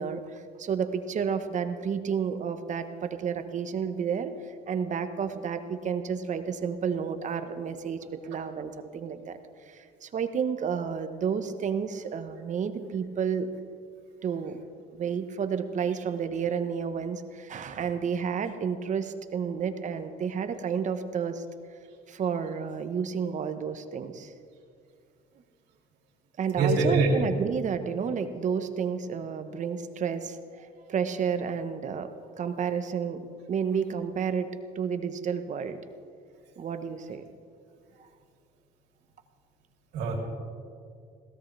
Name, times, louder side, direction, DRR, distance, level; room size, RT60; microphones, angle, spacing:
voice 1, 0.0-13.5 14.2-14.6 14.9-21.4 22.1-24.3 26.4-32.1 32.4-33.2 33.5-34.5 34.7-35.8 36.6-37.2 38.0-38.1, right 7 dB, 45° right, 8 dB, 1.1 m, -31 dB
voice 2, 26.6-27.3 39.9-40.2, right 3 dB, 85° right, -1 dB, 3.3 m, -24 dB
22.0 x 17.0 x 3.4 m, 2.3 s
cardioid pair, 110°, 17 cm